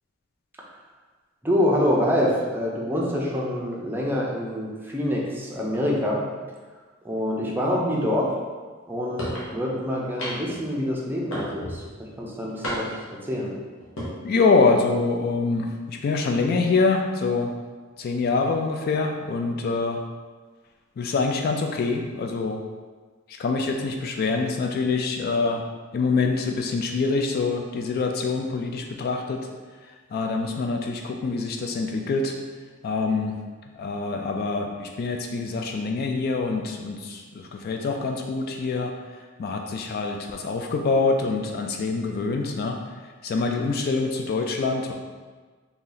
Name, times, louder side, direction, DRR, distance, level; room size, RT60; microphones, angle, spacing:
voice 1, 1.4-6.2 7.0-8.3 8.9-11.8 12.2-12.9 13.2-13.5, left 1 dB, 10° right, -3 dB, 0.5 m, -25 dB
sound 1, 9.2-9.5 10.2-10.6 11.3-11.8 12.6-13.1 13.8-14.1, equal, 70° left, 0.9 m, -31 dB
voice 2, 14.2-17.5 18.0-20.0 21.0-22.6 23.4-25.6 25.9-29.4 30.1-32.4 32.8-33.4 33.7-38.9 39.4-42.8 43.2-44.9, left 4 dB, 50° left, 3 dB, 0.3 m, -25 dB
2.9 x 2.7 x 3.9 m, 1.4 s
head